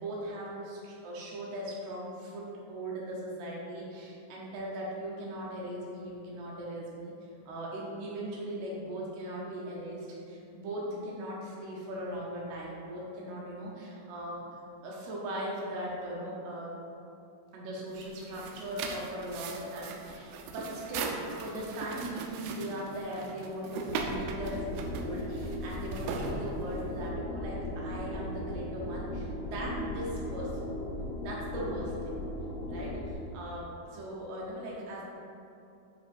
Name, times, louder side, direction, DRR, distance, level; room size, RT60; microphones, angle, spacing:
voice 1, 0.0-16.7 17.5-30.7 31.2-32.1 32.7-35.0, equal, 70° right, -4 dB, 2.7 m, -39 dB
sound 1, 17.9-27.0, right 5 dB, 85° right, 3.0 m, -39 dB
sound 2, 23.8-33.1, left 1 dB, 80° left, 3.1 m, -37 dB
10.5 x 5.0 x 2.6 m, 2.7 s
omnidirectional pair, 5.4 m